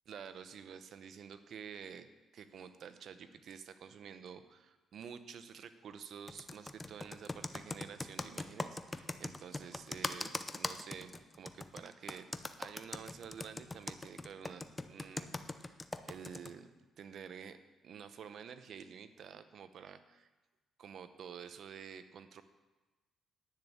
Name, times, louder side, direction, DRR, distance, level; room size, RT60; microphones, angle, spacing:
voice 1, 0.1-2.1 2.3-12.3 12.6-15.8 16.0-16.7 17.0-17.6 17.8-20.3 20.8-22.4, right 7 dB, 65° right, 11 dB, 0.8 m, -50 dB
Computer keyboard, 6.3-16.5, left 2 dB, 20° left, 0.7 m, -41 dB
10.5 x 6.3 x 8.6 m, 1.2 s
cardioid pair, 90°, 0 cm